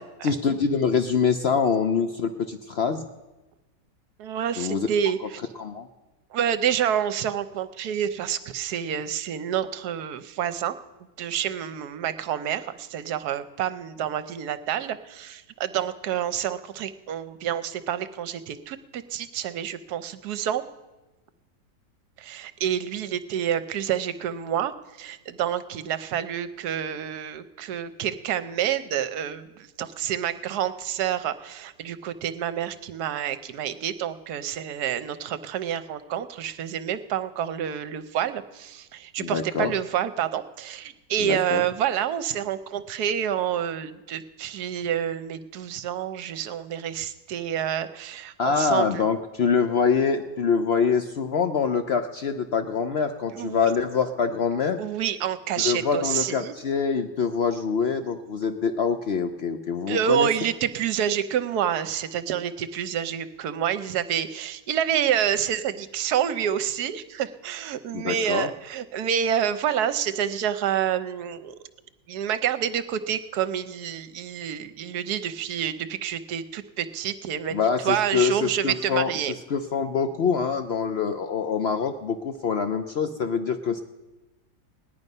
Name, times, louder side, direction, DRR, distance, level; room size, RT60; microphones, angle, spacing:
voice 1, 0.2-3.1 4.6-4.9 5.2-5.3 5.6-5.9 39.2-39.7 41.2-41.6 48.4-54.8 55.6-60.3 67.9-68.5 77.5-79.1 79.5-83.8, left 6 dB, 80° left, 8 dB, 0.5 m, -25 dB
voice 2, 4.2-5.4 6.3-10.8 11.2-20.6 22.2-24.7 25.0-49.0 53.3-53.7 54.8-56.5 59.9-71.5 72.1-77.6 77.8-79.4, right 9 dB, 65° right, 12 dB, 1.2 m, -28 dB
18.5 x 10.5 x 5.4 m, 1.1 s
omnidirectional pair, 1.9 m